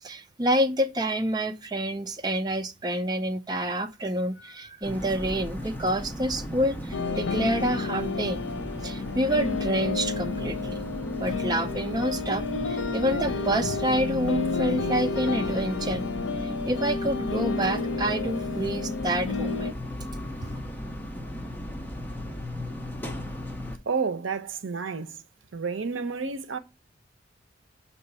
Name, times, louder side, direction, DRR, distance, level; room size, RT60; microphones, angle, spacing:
voice 1, 0.0-8.4 8.8-10.8 11.2-16.0 16.4-19.7, right 1 dB, 20° right, 0.5 m, -28 dB
sound 1, 4.8-23.8, equal, 10° left, 0.8 m, -37 dB
sound 2, 6.9-19.7, left 4 dB, 90° left, 0.6 m, -31 dB
voice 2, 23.9-25.2 25.5-26.6, right 5 dB, 85° right, 0.7 m, -30 dB
6.6 x 2.8 x 5.3 m
head